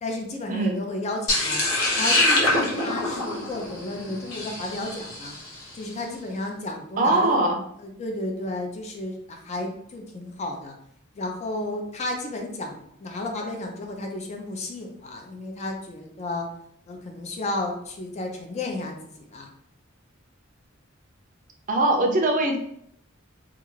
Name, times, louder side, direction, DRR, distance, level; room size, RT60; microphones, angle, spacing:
voice 1, 0.0-1.6 2.0-5.3 5.7-7.4 7.8-10.8 11.1-16.5 16.9-19.5, left 2 dB, 35° left, 3 dB, 0.4 m, -33 dB
sound 1, 1.3-5.6, left 2 dB, 85° left, 0.8 m, -24 dB
voice 2, 7.0-7.6 21.7-22.6, right 2 dB, 40° right, 2 dB, 0.4 m, -21 dB
2.3 x 2.3 x 3.1 m, 0.70 s
head